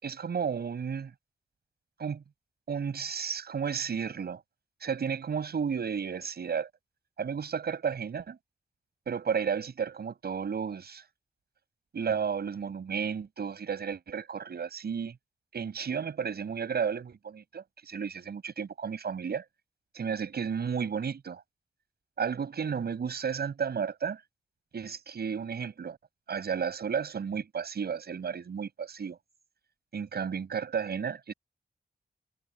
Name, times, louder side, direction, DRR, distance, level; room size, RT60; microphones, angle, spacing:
voice 1, 0.0-1.1 2.0-2.2 2.7-4.4 4.8-6.7 7.2-8.4 9.1-11.0 11.9-15.1 15.5-19.4 19.9-21.4 22.2-24.2 24.7-26.0 26.3-29.2 29.9-31.3, right 6 dB, 85° right, 6.3 m, -33 dB
wide cardioid pair, 145°, 16 cm